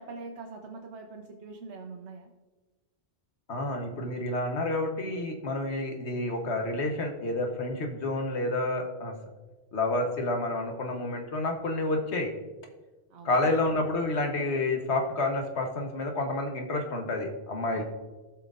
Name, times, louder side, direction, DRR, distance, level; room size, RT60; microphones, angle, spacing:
voice 1, 0.0-2.3 13.1-13.6 17.7-17.8, right 4 dB, 80° right, 2 dB, 1.0 m, -43 dB
voice 2, 3.5-9.1 9.7-12.3 13.2-17.8, left 2 dB, 75° left, 3 dB, 1.4 m, -29 dB
16.0 x 5.9 x 2.5 m, 1.2 s
omnidirectional pair, 1.1 m